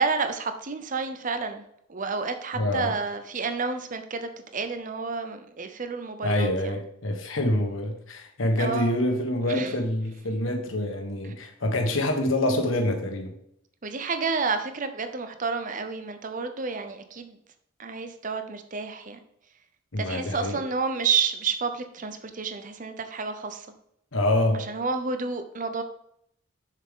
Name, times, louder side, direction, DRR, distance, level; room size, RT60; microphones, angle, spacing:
voice 1, 0.0-1.6 1.9-6.7 8.6-8.9 9.5-9.7 13.8-17.4 17.8-19.2 20.0-23.7 24.7-25.8, right 4 dB, 40° right, 8 dB, 0.7 m, -30 dB
voice 2, 2.5-2.9 6.2-13.3 19.9-20.6 24.1-24.6, left 1 dB, 75° left, 3 dB, 1.4 m, -26 dB
7.2 x 6.5 x 3.7 m, 0.74 s
head